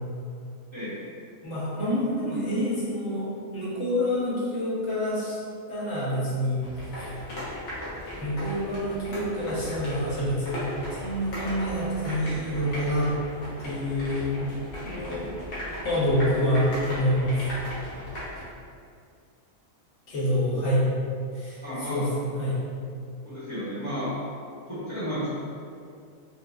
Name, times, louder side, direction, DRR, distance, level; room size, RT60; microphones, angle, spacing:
voice 1, 0.7-1.0 21.6-22.0 23.2-24.1 24.7-25.3, equal, 25° left, -13 dB, 0.9 m, -32 dB
voice 2, 1.4-5.4 5.7-6.6 7.0-7.2 7.8-10.7 11.0-13.1 13.6-14.5 14.8-15.3 15.8-17.3 20.1-20.9 21.3-22.6, equal, 60° left, -9 dB, 1.3 m, -27 dB
sound 1, 6.6-18.4, equal, 80° left, 1.4 m, -37 dB
4.6 x 2.1 x 2.3 m, 2.3 s
omnidirectional pair, 1.4 m